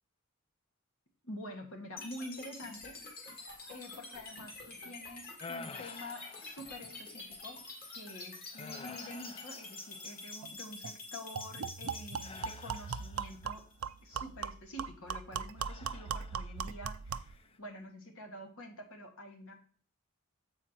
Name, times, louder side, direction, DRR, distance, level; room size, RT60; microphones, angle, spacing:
voice 1, 1.2-7.6 8.0-13.7 14.0-19.5, left 1 dB, 70° left, 3 dB, 1.8 m, -47 dB
sound 1, 2.0-14.0, left 3 dB, 45° left, 2.1 m, -47 dB
sound 2, 5.4-7.1 7.7-7.9 8.5-10.4 12.2-13.5 15.6-16.7 17.1-17.6, left 4 dB, 25° left, 0.4 m, -50 dB
sound 3, 10.4-10.5 10.8-11.0 11.4-17.4, right 6 dB, 70° right, 0.5 m, -39 dB
7.7 x 4.9 x 4.4 m, 0.43 s
head